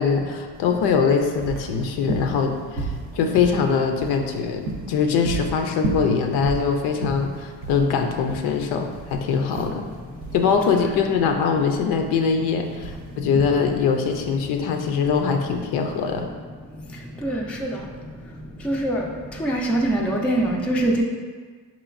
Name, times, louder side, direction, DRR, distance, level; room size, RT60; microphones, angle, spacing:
voice 1, 0.0-9.9 10.3-16.3, left 6 dB, 75° left, 4 dB, 0.5 m, -22 dB
sound 1, 0.6-16.2, right 3 dB, 85° right, 0.8 m, -33 dB
voice 2, 17.2-17.7 18.6-19.1 19.4-21.0, right 1 dB, 5° left, -1 dB, 0.3 m, -23 dB
4.9 x 3.0 x 2.4 m, 1.5 s
cardioid pair, 95°, 40 cm